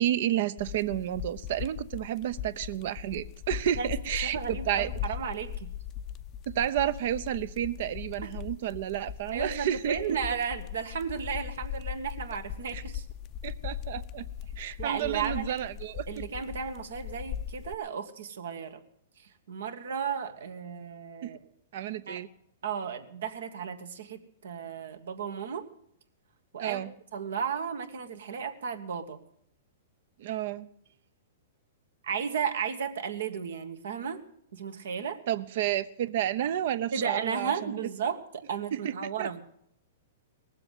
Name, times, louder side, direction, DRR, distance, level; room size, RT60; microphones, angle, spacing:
voice 1, 0.0-4.9 6.5-10.0 12.7-12.8 13.4-14.3 14.6-16.1 21.2-21.3 21.7-22.3 26.6-26.9 30.2-30.7 35.3-37.8 38.7-38.9 39.2-39.3, right 11 dB, 60° right, 14 dB, 0.8 m, -31 dB
sound 1, 0.6-17.7, left 10 dB, 35° left, 0.6 m, -39 dB
voice 2, 4.2-5.7 8.2-8.3 9.3-13.0 14.8-15.6 16.1-18.8 19.2-21.4 22.1-22.2 22.6-25.7 26.5-26.9 27.1-29.2 32.0-34.2 34.5-35.2 36.9-39.4, right 7 dB, 75° right, 8 dB, 1.7 m, -34 dB
19.5 x 7.7 x 9.2 m, 0.69 s
hypercardioid pair, 135°, 0 cm